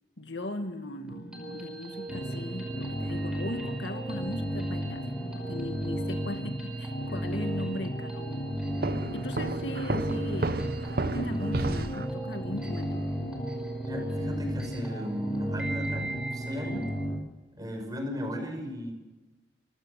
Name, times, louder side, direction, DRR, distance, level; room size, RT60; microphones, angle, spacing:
voice 1, 0.2-5.1 5.3-8.5 9.1-10.7 11.0-13.1, left 1 dB, 85° left, 6 dB, 2.1 m, -38 dB
sound 1, 1.1-17.1, right 1 dB, 5° right, 4.9 m, -42 dB
sound 2, 2.1-17.2, equal, 30° left, 3.7 m, -34 dB
Walk footsteps, 8.8-12.1, right 2 dB, 55° right, 0.9 m, -32 dB
voice 2, 13.8-16.9 17.6-18.9, equal, 20° right, 4 dB, 5.1 m, -36 dB
28.5 x 16.0 x 6.5 m, 1.1 s
head